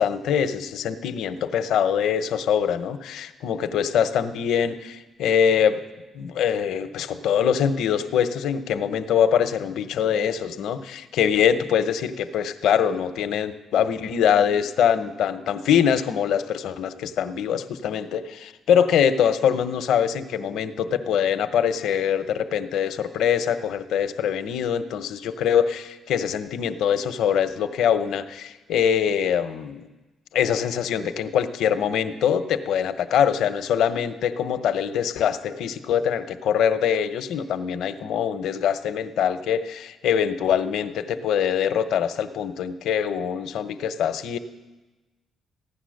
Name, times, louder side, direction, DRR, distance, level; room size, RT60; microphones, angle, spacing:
voice 1, 0.0-5.8 6.1-29.8 30.3-44.4, left 8 dB, 80° left, 10 dB, 0.7 m, -23 dB
15.5 x 10.0 x 6.4 m, 1.2 s
cardioid pair, 90°, 0 cm